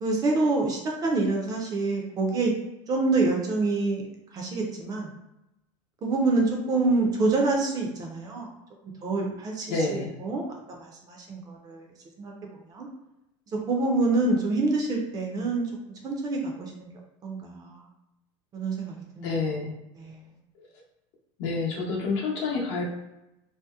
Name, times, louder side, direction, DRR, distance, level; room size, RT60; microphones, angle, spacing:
voice 1, 0.0-2.5 2.9-4.0 4.3-5.1 6.0-8.5 9.0-11.9 12.2-12.3 12.7-12.9 13.7-15.7 16.0-16.9 17.2-17.8 18.5-19.4 20.0-20.2, right 3 dB, 25° right, 0 dB, 0.4 m, -26 dB
voice 2, 9.7-10.1 19.2-19.7 20.6-20.7 21.4-22.9, left 3 dB, 70° left, -2 dB, 0.8 m, -28 dB
2.7 x 2.0 x 2.3 m, 0.91 s
supercardioid pair, 145°, 15 cm